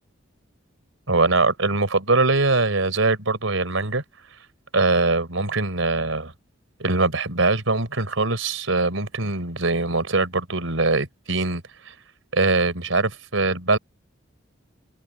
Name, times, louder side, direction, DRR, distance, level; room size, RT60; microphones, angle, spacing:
voice 1, 1.1-4.0 4.7-6.3 6.8-11.9 12.3-13.8, right 3 dB, 90° right, 4.1 m, -22 dB
head